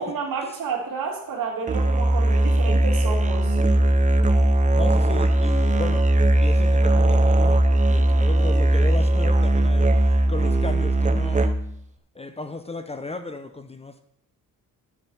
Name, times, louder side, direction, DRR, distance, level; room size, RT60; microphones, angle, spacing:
voice 1, 0.0-3.6, right 5 dB, 80° right, 2.9 m, -30 dB
Musical instrument, 1.7-11.8, right 1 dB, 20° right, 0.6 m, -19 dB
voice 2, 4.7-6.0 6.4-11.6 12.1-14.0, left 3 dB, 20° left, 0.6 m, -35 dB
11.0 x 4.9 x 7.1 m
wide cardioid pair, 160°, 34 cm